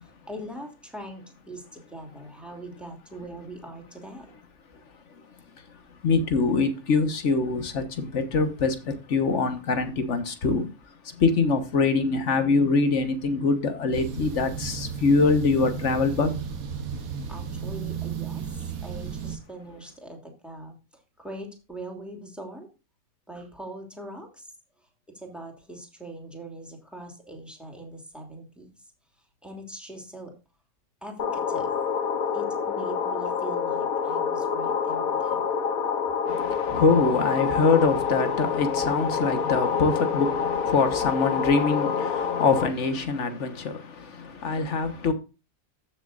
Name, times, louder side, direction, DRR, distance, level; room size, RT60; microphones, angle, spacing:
voice 1, 0.0-4.4 17.0-22.7 23.3-24.5 25.1-28.9 29.4-30.3 31.0-31.7 32.3-35.4, right 1 dB, ahead, 2.8 m, -41 dB
voice 2, 6.0-10.7 11.0-16.4 36.3-45.1, left 4 dB, 60° left, 1.6 m, -24 dB
sound 1, 13.9-19.4, right 6 dB, 90° right, 1.6 m, -34 dB
sound 2, 31.2-42.7, left 6 dB, 90° left, 1.4 m, -27 dB
14.5 x 6.7 x 2.5 m
omnidirectional pair, 1.4 m